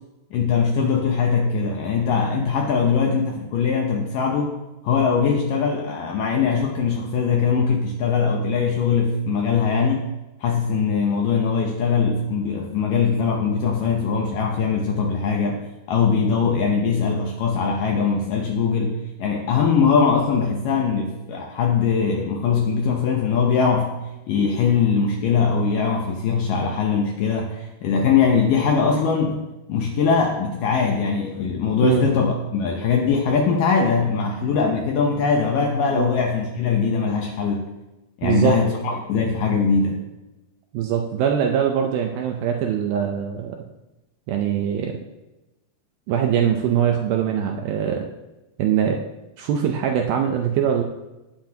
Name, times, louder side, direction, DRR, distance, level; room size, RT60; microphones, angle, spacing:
voice 1, 0.3-4.6 4.8-10.1 10.4-24.0 24.3-29.4 29.7-37.7 38.2-40.0, left 5 dB, 75° left, 1 dB, 2.0 m, -21 dB
voice 2, 38.2-38.6 40.7-43.6 44.3-45.0 46.1-48.1 48.6-49.0 49.4-50.8, right 8 dB, 80° right, 3 dB, 2.2 m, -22 dB
18.0 x 7.7 x 2.9 m, 1.0 s
omnidirectional pair, 4.9 m